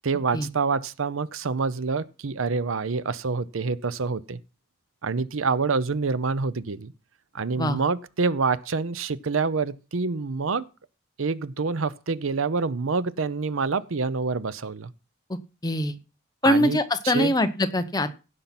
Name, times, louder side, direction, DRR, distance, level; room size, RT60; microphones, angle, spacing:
voice 1, 0.0-4.4 5.0-6.9 7.3-10.7 11.2-14.9 16.4-16.8 17.0-17.3, right 4 dB, 80° right, 0.7 m, -27 dB
voice 2, 15.3-16.0 16.4-18.2, left 1 dB, 20° left, 0.8 m, -23 dB
16.0 x 5.8 x 5.8 m
head